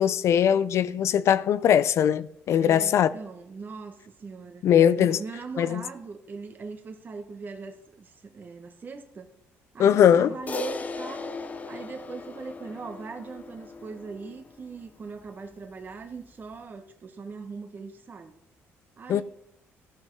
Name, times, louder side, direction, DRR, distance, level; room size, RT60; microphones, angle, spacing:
voice 1, 0.0-3.1 4.6-5.2 5.6-5.8 9.8-10.4 19.1-19.2, left 9 dB, 60° left, 0.5 m, -20 dB
voice 2, 2.6-4.6 4.9-9.3 9.7-11.4 11.7-18.4 19.0-19.2, right 4 dB, 35° right, 1.3 m, -40 dB
Crash cymbal, 10.5-15.0, left 3 dB, 30° left, 0.8 m, -37 dB
14.5 x 5.7 x 4.7 m
cardioid pair, 115°, 5 cm